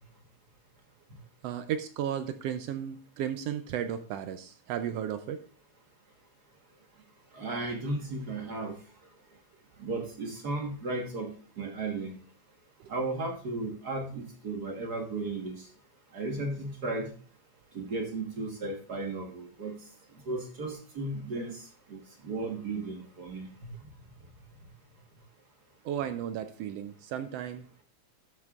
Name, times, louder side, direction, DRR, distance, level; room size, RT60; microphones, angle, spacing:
voice 1, 1.4-5.4 12.8-12.9 25.8-27.8, right 9 dB, 80° right, 9 dB, 1.4 m, -34 dB
voice 2, 7.3-8.7 9.8-11.3 11.6-12.1 12.9-15.6 16.1-17.1 17.7-19.7 20.3-21.5 21.9-22.0 22.2-23.5, right 2 dB, 45° right, 2 dB, 1.5 m, -34 dB
13.0 x 7.8 x 2.4 m, 0.41 s
omnidirectional pair, 3.3 m